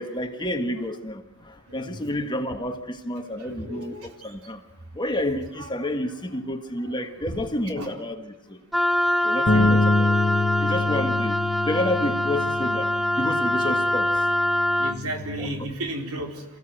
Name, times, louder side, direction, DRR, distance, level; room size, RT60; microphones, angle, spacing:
voice 1, 0.0-4.6 4.9-8.6 9.2-14.2 15.4-15.5, left 1 dB, 20° left, 6 dB, 1.6 m, -30 dB
voice 2, 1.7-2.0 3.4-4.1 5.6-5.7 6.9-7.0 7.8-7.9 9.5-9.7 14.8-16.5, right 1 dB, 80° right, 3 dB, 4.0 m, -34 dB
Wind instrument woodwind instrument, 8.7-15.0, left 1 dB, ahead, 0.7 m, -24 dB
Bass guitar, 9.5-15.7, left 2 dB, 50° left, 1.1 m, -26 dB
27.5 x 16.5 x 7.8 m, 0.94 s
head